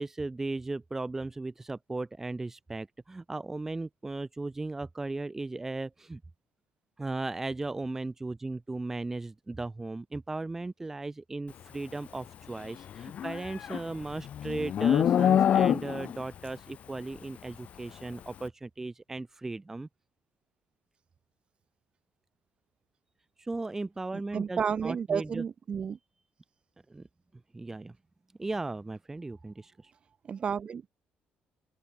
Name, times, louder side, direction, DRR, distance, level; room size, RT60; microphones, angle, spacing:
voice 1, 0.0-6.2 7.0-19.9 23.4-25.4 26.9-27.1 27.5-28.0 28.4-29.9, right 2 dB, 10° right, 1.9 m, -36 dB
Livestock farm animals working animals, 13.0-16.2, left 9 dB, 40° left, 0.7 m, -25 dB
voice 2, 24.1-26.0 30.2-30.9, right 7 dB, 30° right, 2.9 m, -32 dB
open air
cardioid pair, 180°, 3 cm